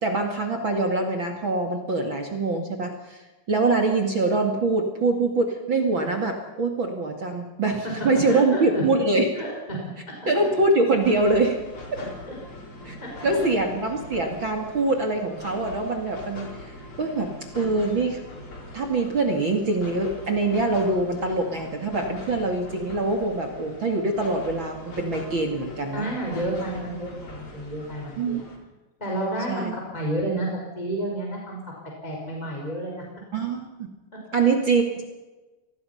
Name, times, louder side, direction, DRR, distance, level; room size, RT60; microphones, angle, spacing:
voice 1, 0.0-3.2 3.5-9.3 10.3-11.6 11.9-12.0 12.8-13.0 13.2-18.2 18.7-26.1 28.2-28.4 29.5-29.7 33.3-33.9 34.3-35.1, right 3 dB, 40° right, 3 dB, 2.0 m, -24 dB
voice 2, 8.3-8.8 9.3-9.8 10.1-10.2 12.0-12.3 13.0-13.4 25.9-28.4 29.0-30.5 30.7-31.6 32.0-33.0, right 1 dB, 10° left, -1 dB, 4.9 m, -30 dB
sound 1, 11.0-28.6, left 1 dB, 30° left, 4.3 m, -42 dB
25.5 x 20.0 x 5.8 m, 1.2 s
omnidirectional pair, 5.0 m